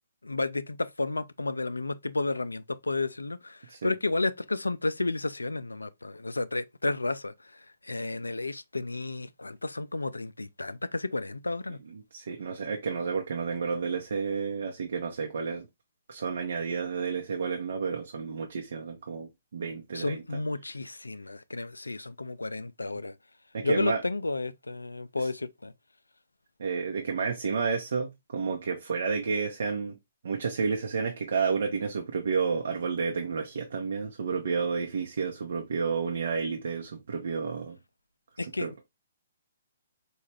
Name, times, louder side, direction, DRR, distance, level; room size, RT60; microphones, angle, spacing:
voice 1, 0.2-11.8 19.9-23.1 23.6-25.7 38.4-38.8, left 2 dB, 85° left, 0.3 m, -32 dB
voice 2, 12.1-15.7 16.1-20.2 23.5-24.0 25.2-25.3 26.6-30.0 30.2-37.8 38.4-38.7, right 5 dB, 60° right, 0.7 m, -31 dB
4.6 x 2.4 x 3.2 m
figure-of-eight pair, 125°, 0 cm